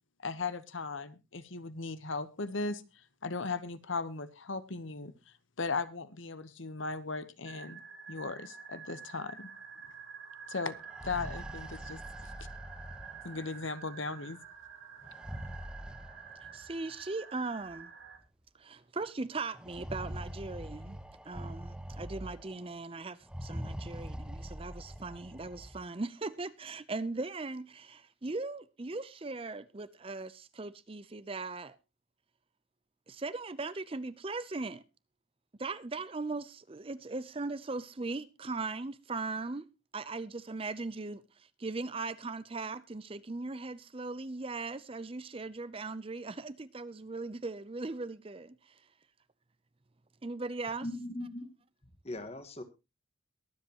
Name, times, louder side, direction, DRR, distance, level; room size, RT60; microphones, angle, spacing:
voice 1, 0.2-2.8 3.2-5.1 5.6-7.8 8.1-9.5 10.5-10.8 11.0-12.0 13.2-14.4, left 4 dB, 70° left, 1.0 m, -37 dB
sound 1, 7.4-18.2, right 7 dB, 80° right, 5.2 m, -49 dB
sound 2, 10.8-13.7 15.0-16.7 17.7-17.8 18.2-18.3 19.5-22.7 23.2-25.8, equal, 5° right, 1.1 m, -43 dB
voice 2, 16.5-17.9 18.6-21.0 21.2-31.8 33.1-34.8 35.6-39.7 39.9-48.8 50.2-50.9, right 3 dB, 25° right, 0.6 m, -39 dB
voice 3, 50.8-51.5 51.8-52.6, left 1 dB, 30° left, 1.6 m, -40 dB
22.5 x 7.8 x 2.9 m
head